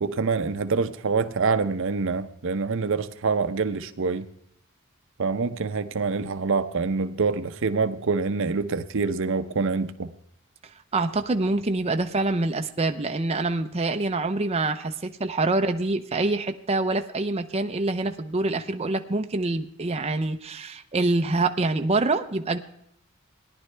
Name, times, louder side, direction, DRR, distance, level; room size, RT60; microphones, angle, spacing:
voice 1, 0.0-4.3 5.2-10.1, right 4 dB, 65° right, 11 dB, 0.7 m, -26 dB
voice 2, 10.9-22.6, right 2 dB, 30° right, 6 dB, 0.6 m, -25 dB
18.0 x 11.0 x 3.3 m, 0.71 s
head